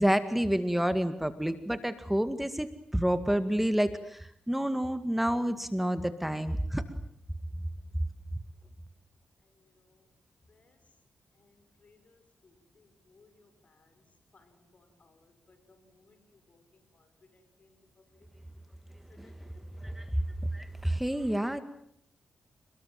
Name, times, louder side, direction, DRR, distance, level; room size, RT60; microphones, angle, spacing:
voice 1, 0.0-6.8 19.2-19.3 19.8-20.0 20.5-21.6, equal, 5° right, 11 dB, 2.1 m, -29 dB
voice 2, 11.8-12.2 12.8-13.5 14.3-15.3 15.7-16.2 17.3-17.7 19.2-19.3 19.8-19.9, left 3 dB, 55° left, 9 dB, 6.8 m, -63 dB
29.0 x 21.5 x 7.8 m, 0.69 s
cardioid pair, 55°, 3 cm